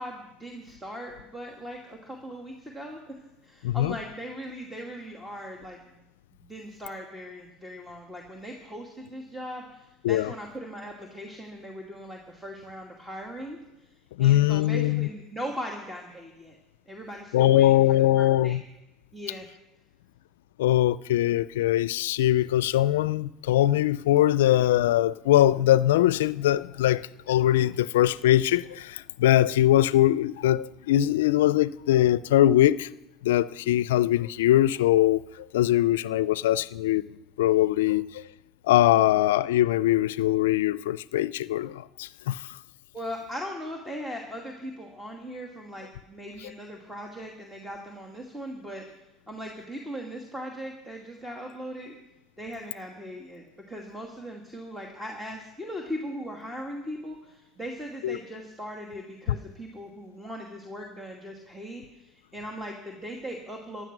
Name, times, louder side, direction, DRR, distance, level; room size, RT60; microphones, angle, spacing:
voice 1, 0.0-3.2 3.4-5.8 6.3-13.6 14.2-16.6 16.9-18.6 19.1-19.5 42.9-48.8 49.3-52.0 52.4-63.8, equal, 10° right, 2.3 m, -39 dB
voice 2, 3.6-4.0 10.0-10.3 14.2-15.1 17.3-18.6 20.6-32.9 33.2-37.1 37.4-38.2 38.7-42.6 58.0-58.2, left 13 dB, 85° left, 0.4 m, -22 dB
14.5 x 11.0 x 6.1 m
hypercardioid pair, 85°, 0 cm